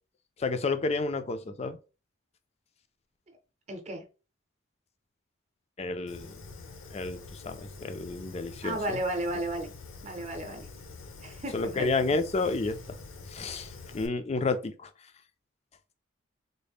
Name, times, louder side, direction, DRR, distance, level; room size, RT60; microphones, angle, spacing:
voice 1, 0.4-1.8 5.8-6.4 6.9-9.0 11.5-13.0 13.3-14.9, left 3 dB, 30° left, 0.4 m, -31 dB
voice 2, 3.7-4.0 8.6-9.7 10.0-10.7 11.2-11.9, right 1 dB, 35° right, 0.7 m, -33 dB
Fire, 6.1-14.1, left 3 dB, 75° left, 0.7 m, -46 dB
3.9 x 2.1 x 3.5 m
head